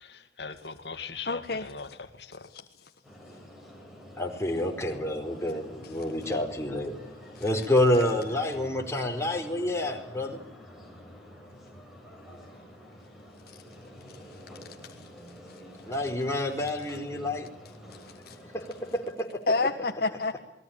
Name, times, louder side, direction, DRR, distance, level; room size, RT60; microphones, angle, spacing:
voice 1, 0.0-2.5, left 5 dB, 75° left, 8 dB, 2.3 m, -41 dB
voice 2, 1.2-1.6 7.4-7.5 14.3-14.4 15.5-15.7 18.0-18.4 19.5-20.4, left 3 dB, 60° left, 6 dB, 1.5 m, -29 dB
sound 1, 3.0-19.1, equal, ahead, 7.0 m, -48 dB
voice 3, 4.2-6.9 7.4-10.4 15.8-17.5 18.5-19.4, left 1 dB, 15° left, 2 dB, 4.5 m, -28 dB
28.5 x 21.0 x 9.0 m, 0.72 s
head